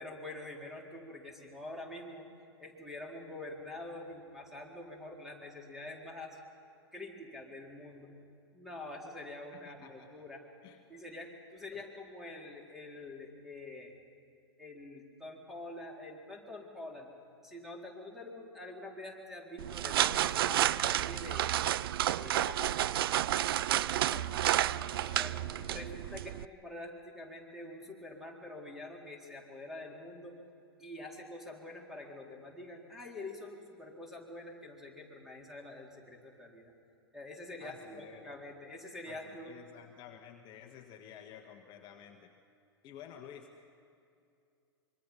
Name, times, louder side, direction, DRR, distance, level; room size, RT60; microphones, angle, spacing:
voice 1, 0.0-2.3 2.6-6.4 6.9-8.1 8.5-10.4 10.9-13.9 14.6-17.1 17.4-21.6 22.2-22.9 25.2-30.4 30.8-36.7 37.1-39.6, left 2 dB, 5° right, 0 dB, 4.1 m, -46 dB
voice 2, 9.5-10.2 10.6-10.8 11.7-11.8 24.0-25.9 37.6-38.2 39.1-42.3 42.8-43.5, left 9 dB, 35° left, 4 dB, 1.5 m, -52 dB
sound 1, 19.6-26.4, right 12 dB, 60° right, 0.5 m, -30 dB
25.5 x 24.0 x 5.8 m, 2.5 s
hypercardioid pair, 100°, 13 cm